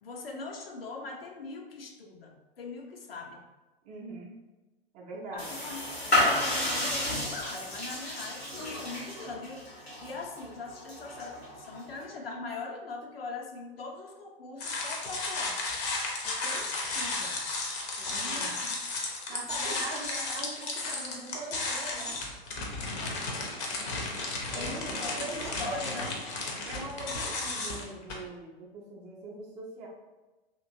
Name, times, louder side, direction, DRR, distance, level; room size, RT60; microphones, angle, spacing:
voice 1, 0.0-3.4 5.3-15.6 16.2-17.4 18.1-18.7 19.3-19.8 23.0-23.3 24.5-26.2, left 3 dB, 70° left, 2 dB, 0.7 m, -42 dB
voice 2, 3.8-4.4 4.9-5.5 18.0-18.6 19.3-22.2 24.5-26.1 26.7-29.9, right 2 dB, 25° right, -2 dB, 0.6 m, -42 dB
sound 1, 5.4-12.0, left 1 dB, 90° left, 1.3 m, -32 dB
sound 2, 14.6-28.1, left 3 dB, 30° left, 0.6 m, -34 dB
2.9 x 2.7 x 2.6 m, 1.1 s
figure-of-eight pair, 100°, 30 cm